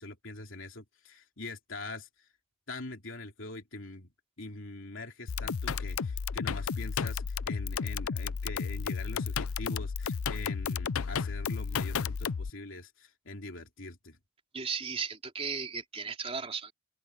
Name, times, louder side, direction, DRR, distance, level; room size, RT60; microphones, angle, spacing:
voice 1, 0.0-2.3 2.7-4.1 4.4-14.2, left 2 dB, 65° left, 3.4 m, -43 dB
sound 1, 5.3-12.5, left 6 dB, 85° left, 0.6 m, -33 dB
voice 2, 14.5-16.7, right 5 dB, 30° right, 3.5 m, -35 dB
open air
head